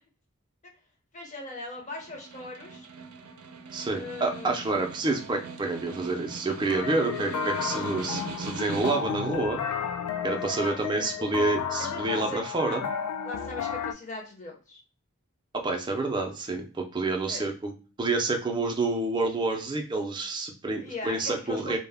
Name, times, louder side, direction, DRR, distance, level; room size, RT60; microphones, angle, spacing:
voice 1, 1.1-2.9 3.9-4.6 10.4-11.5 11.8-12.8 13.2-14.8 17.3-17.5 20.8-21.8, left 2 dB, 35° left, 0 dB, 0.6 m, -39 dB
Snare drum, 1.8-9.3, right 4 dB, 80° right, 0.5 m, -41 dB
voice 2, 3.7-9.6 10.2-12.8 15.5-17.7 18.0-21.8, right 3 dB, 20° right, 2 dB, 0.4 m, -28 dB
sound 1, 6.7-13.9, left 7 dB, 85° left, 0.3 m, -32 dB
2.1 x 2.0 x 3.3 m, 0.36 s
head